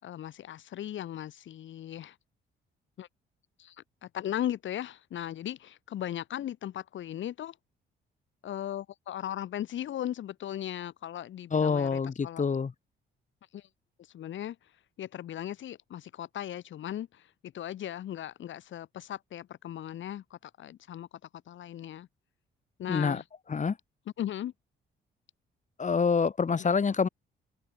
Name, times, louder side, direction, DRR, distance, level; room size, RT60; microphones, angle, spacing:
voice 1, 0.0-2.2 3.0-3.1 3.6-3.8 4.0-7.6 8.4-12.4 13.5-13.7 14.1-14.6 15.0-21.1 21.5-22.1 22.8-23.2 24.2-24.5 26.6-26.8, left 11 dB, 70° left, 6.2 m, -37 dB
voice 2, 11.5-12.7 22.9-23.2 23.5-23.8 25.8-27.1, left 5 dB, 40° left, 6.9 m, -26 dB
cardioid pair, 90°, 20 cm